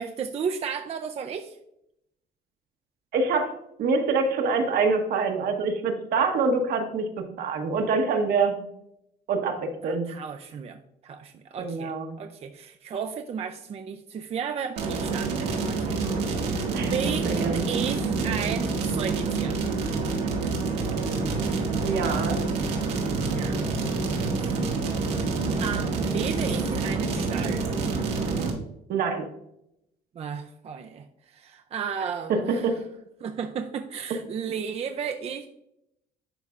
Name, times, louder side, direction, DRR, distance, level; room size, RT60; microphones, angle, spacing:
voice 1, 0.0-1.6 9.8-15.3 15.6-16.0 16.3-19.6 23.2-23.6 24.2-24.7 25.2-27.8 30.2-32.7 33.2-35.5, right 7 dB, 35° right, 6 dB, 0.4 m, -34 dB
voice 2, 3.1-3.5 3.8-7.1 7.4-8.6 9.3-10.1 11.6-12.1 16.7-17.6 21.8-22.4 28.9-29.2 32.3-32.7, right 4 dB, 65° right, 4 dB, 1.2 m, -25 dB
sound 1, 14.8-28.5, right 4 dB, 90° right, 1.6 m, -27 dB
11.0 x 4.1 x 2.4 m, 0.79 s
cardioid pair, 110°, 17 cm